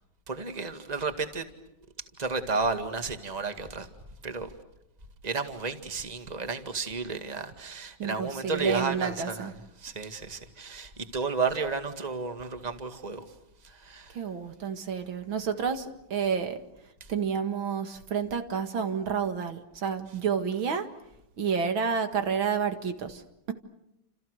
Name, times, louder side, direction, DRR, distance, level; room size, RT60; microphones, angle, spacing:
voice 1, 0.3-1.4 2.2-3.9 4.2-4.5 5.2-9.5 9.8-13.2 13.8-14.1, right 4 dB, 20° right, 2.0 m, -32 dB
voice 2, 8.0-9.5 14.1-16.6 17.1-20.9 21.4-23.2, right 6 dB, 80° right, 2.7 m, -30 dB
30.0 x 28.0 x 6.5 m
omnidirectional pair, 2.2 m